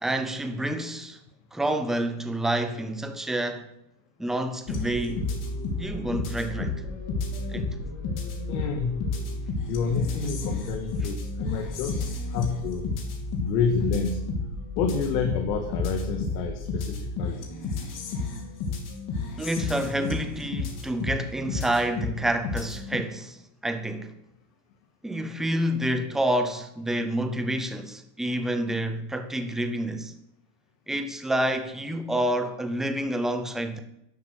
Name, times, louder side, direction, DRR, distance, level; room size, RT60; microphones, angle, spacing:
voice 1, 0.0-1.2 1.5-3.7 4.2-5.4 5.7-6.8 7.5-7.8 19.4-24.1 25.0-30.2 30.9-33.8, right 1 dB, ahead, 0.4 m, -28 dB
sound 1, 4.7-23.0, left 3 dB, 40° left, 3.0 m, -32 dB
voice 2, 8.5-9.0 9.7-13.0 13.3-14.3 14.8-17.5, left 5 dB, 80° left, 2.1 m, -29 dB
11.5 x 11.0 x 6.5 m
cardioid pair, 165°, 49 cm